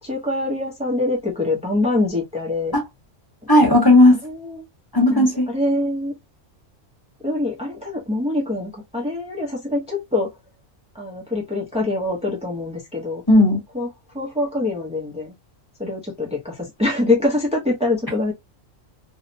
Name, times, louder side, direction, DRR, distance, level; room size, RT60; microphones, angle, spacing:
voice 1, 0.0-2.7 3.8-4.7 4.9-6.2 7.2-10.3 10.9-13.2 13.7-13.9 14.1-15.3 15.8-18.3, left 2 dB, 10° right, 0.3 m, -24 dB
voice 2, 3.5-4.2 4.9-5.5 13.3-13.6, left 1 dB, 20° left, 0.9 m, -14 dB
2.7 x 2.0 x 2.5 m
omnidirectional pair, 1.3 m